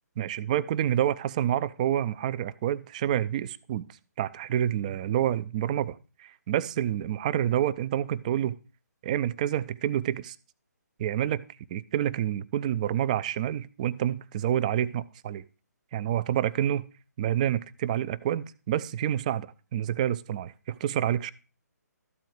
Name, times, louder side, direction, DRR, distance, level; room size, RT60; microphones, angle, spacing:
voice 1, 0.2-3.9 4.2-8.6 9.0-10.4 11.0-11.4 11.7-15.4 15.9-16.9 17.2-21.3, right 11 dB, 25° right, 17 dB, 0.5 m, -28 dB
13.5 x 4.5 x 7.7 m, 0.33 s
figure-of-eight pair, 140°, 10 cm